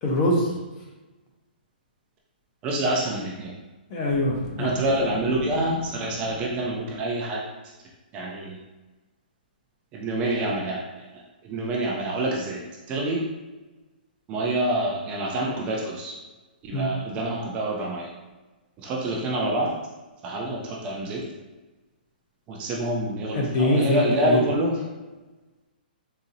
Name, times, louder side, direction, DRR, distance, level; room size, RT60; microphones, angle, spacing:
voice 1, 0.0-0.5 3.9-4.7 16.7-16.9 23.3-24.4, left 1 dB, 30° left, -1 dB, 0.7 m, -23 dB
voice 2, 2.6-3.5 4.6-7.5 8.1-8.6 9.9-11.0 11.4-12.6 12.9-13.3 14.3-16.1 16.6-18.1 18.8-19.7 20.2-21.3 22.5-24.8, right 1 dB, 20° right, -2 dB, 0.5 m, -27 dB
Boom, 4.1-7.1, left 2 dB, 70° left, 0.6 m, -39 dB
4.0 x 2.7 x 2.6 m, 1.2 s
hypercardioid pair, 155°, 5 cm